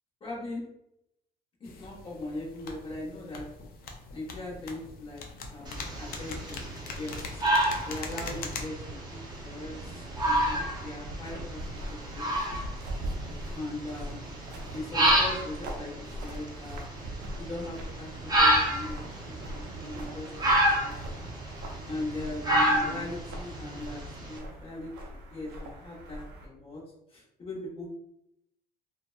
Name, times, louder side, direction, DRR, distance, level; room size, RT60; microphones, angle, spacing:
voice 1, 0.2-0.6 1.6-3.4 4.1-5.2 5.5-6.6 7.0-7.4 7.9-11.6 11.9-12.3 13.5-14.2 14.7-15.9 16.2-16.9 17.4-20.5 20.8-21.3 21.8-26.8 27.1-27.9, left 2 dB, 35° left, -4 dB, 1.0 m, -40 dB
sound 1, 1.6-8.6, left 3 dB, 60° left, 0.4 m, -42 dB
sound 2, 5.7-24.4, right 1 dB, 25° right, 0.6 m, -30 dB
sound 3, 8.8-26.5, right 1 dB, 80° right, 0.6 m, -41 dB
2.6 x 2.2 x 2.3 m, 0.84 s
cardioid pair, 110°, 17 cm